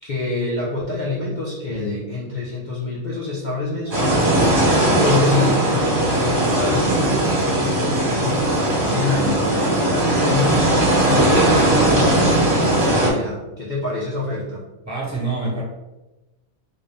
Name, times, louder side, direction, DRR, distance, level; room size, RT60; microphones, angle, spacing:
voice 1, 0.0-4.4 5.0-14.6, left 3 dB, 55° left, -5 dB, 0.5 m, -26 dB
sound 1, 3.9-13.1, right 1 dB, 40° right, 1.3 m, -18 dB
voice 2, 14.8-15.6, right 3 dB, 15° right, -5 dB, 1.1 m, -26 dB
3.6 x 2.6 x 3.3 m, 1.0 s
omnidirectional pair, 1.5 m